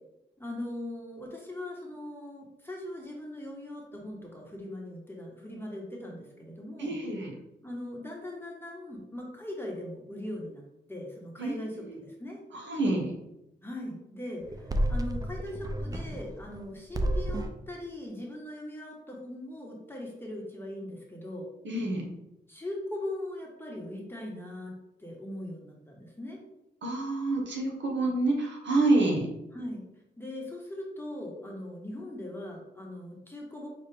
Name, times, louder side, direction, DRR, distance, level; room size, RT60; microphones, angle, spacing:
voice 1, 0.4-7.0 7.6-10.6 10.9-12.4 13.6-21.5 22.5-24.7 25.0-26.4 29.5-29.8 30.2-33.7, left 1 dB, 10° left, -2 dB, 1.1 m, -40 dB
voice 2, 6.8-7.3 11.4-12.0 12.5-13.1 21.6-22.1 26.8-29.2, right 2 dB, 70° right, 0 dB, 1.1 m, -28 dB
sound 1, 14.4-16.6 16.9-17.6, right 1 dB, 20° right, 0.4 m, -31 dB
5.6 x 2.4 x 3.3 m, 0.87 s
cardioid pair, 85°, 19 cm